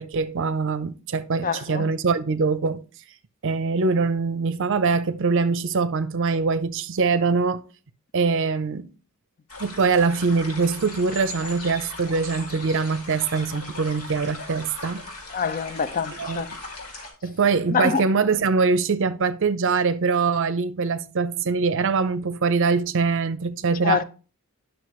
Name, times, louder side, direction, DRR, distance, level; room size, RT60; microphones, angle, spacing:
voice 1, 0.0-2.8 3.4-7.6 8.1-8.9 9.6-15.0 16.1-16.4 17.2-24.0, right 4 dB, 60° right, 0.6 m, -23 dB
voice 2, 1.4-1.9 15.3-16.5 17.7-18.0 23.8-24.0, left 6 dB, 40° left, 0.5 m, -25 dB
sound 1, 9.5-17.1, left 3 dB, 85° left, 2.5 m, -39 dB
9.6 x 6.2 x 3.1 m
head